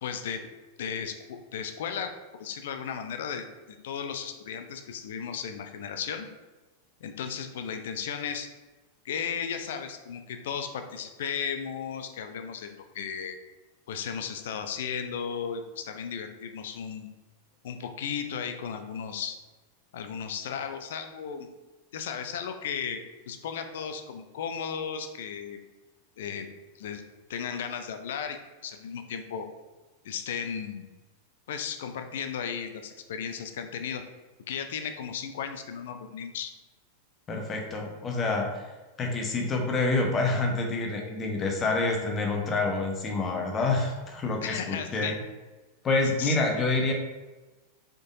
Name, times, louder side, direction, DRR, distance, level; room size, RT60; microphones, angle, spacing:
voice 1, 0.0-0.4 0.8-2.1 2.4-6.3 7.0-8.5 9.0-13.3 13.9-17.1 17.6-19.4 19.9-21.5 21.9-23.0 23.3-25.6 26.2-26.5 26.8-27.0 27.3-28.4 28.6-29.5 30.0-30.9 31.5-34.0 34.5-36.5 44.4-45.1 46.2-46.4, left 7 dB, 55° left, 7 dB, 0.5 m, -35 dB
voice 2, 37.3-38.7 39.0-45.2 45.8-46.9, left 3 dB, 25° left, 1 dB, 0.9 m, -27 dB
5.0 x 3.8 x 2.6 m, 1.2 s
figure-of-eight pair, 90°, 0 cm